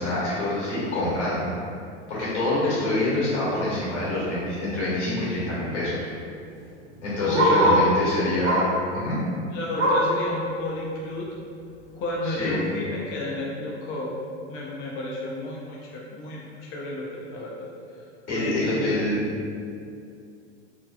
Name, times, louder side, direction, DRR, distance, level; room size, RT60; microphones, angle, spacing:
voice 1, 0.0-1.5 2.1-6.0 7.0-8.7 8.9-9.2 12.2-12.6 18.3-19.2, left 1 dB, 80° left, -8 dB, 1.2 m, -26 dB
Bark, 4.2-4.4 4.8-4.9 5.1-7.9 8.4-8.8 9.2-10.2 10.6-10.7 11.1-11.2 11.9-12.0, equal, 70° right, 0.9 m, -24 dB
voice 2, 7.2-8.1 9.5-11.3 11.9-14.1 14.5-17.7 18.3-18.9, left 1 dB, 40° left, -4 dB, 0.4 m, -31 dB
2.7 x 2.1 x 2.4 m, 2.4 s
hypercardioid pair, 95°, 35 cm